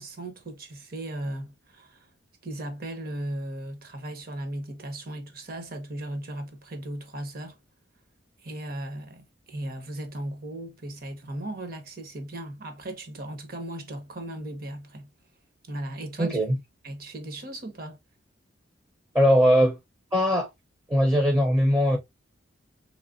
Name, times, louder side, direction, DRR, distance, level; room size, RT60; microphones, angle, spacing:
voice 1, 0.0-2.1 2.4-7.6 8.4-15.1 15.7-16.4 16.8-18.0, right 1 dB, 50° right, 1.0 m, -37 dB
voice 2, 16.2-16.6 19.1-19.8 20.1-20.5 20.9-22.0, equal, 15° right, 0.6 m, -20 dB
3.3 x 3.2 x 2.4 m
head